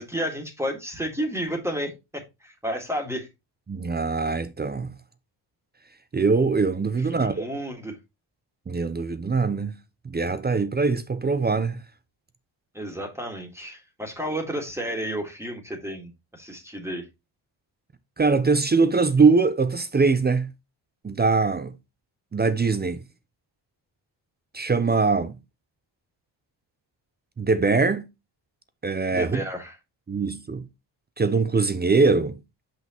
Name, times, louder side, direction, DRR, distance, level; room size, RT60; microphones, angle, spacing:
voice 1, 0.0-3.3 7.0-8.0 12.7-17.1 29.1-29.7, equal, 5° right, 1.8 m, -32 dB
voice 2, 3.7-4.9 6.1-7.4 8.7-9.7 10.0-11.8 18.2-20.5 21.0-21.7 22.3-23.0 24.5-25.4 27.4-28.0 28.8-29.4 30.1-30.6 31.2-32.4, right 4 dB, 20° right, 0.6 m, -22 dB
5.9 x 5.6 x 2.9 m
cardioid pair, 85°, 46 cm